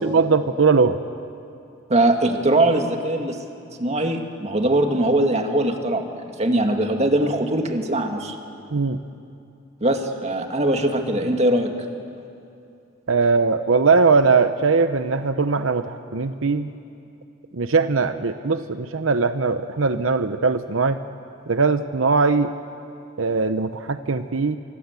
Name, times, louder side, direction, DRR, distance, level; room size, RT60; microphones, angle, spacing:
voice 1, 0.0-1.0 8.7-9.0 13.1-16.7 17.5-21.0 21.5-22.5 23.2-24.6, right 4 dB, 85° right, 10 dB, 0.8 m, -20 dB
voice 2, 1.9-3.4 3.8-6.1 6.4-8.4 9.8-11.7, right 1 dB, 35° right, 4 dB, 2.0 m, -21 dB
25.0 x 23.5 x 8.3 m, 2.6 s
head